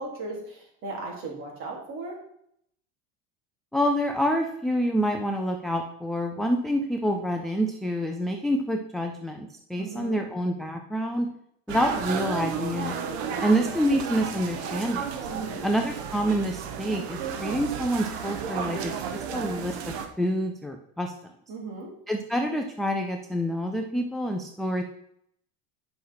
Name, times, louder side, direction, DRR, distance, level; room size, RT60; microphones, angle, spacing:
voice 1, 0.0-2.2 9.8-10.2 13.2-13.5 15.3-15.6 21.5-21.9, right 3 dB, 40° right, 0 dB, 3.4 m, -37 dB
voice 2, 3.7-11.3 11.7-13.0 13.4-15.1 15.6-21.1 22.1-24.8, equal, ahead, 3 dB, 0.3 m, -27 dB
sound 1, 11.7-20.1, right 7 dB, 75° right, 1.5 m, -33 dB
10.0 x 5.7 x 5.6 m, 0.71 s
cardioid pair, 165°, 33 cm